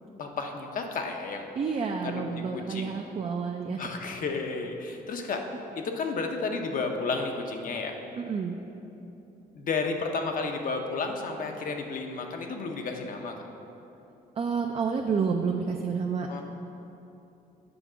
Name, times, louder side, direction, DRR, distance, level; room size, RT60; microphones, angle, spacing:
voice 1, 0.2-1.5 2.0-2.2 2.5-3.0 3.8-8.0 9.6-13.3 16.3-16.4, left 4 dB, 60° left, 3 dB, 0.7 m, -32 dB
voice 2, 1.6-3.8 8.2-8.6 14.4-16.4, right 5 dB, 40° right, 3 dB, 0.4 m, -29 dB
7.9 x 3.6 x 6.1 m, 2.9 s
cardioid pair, 100°, 16 cm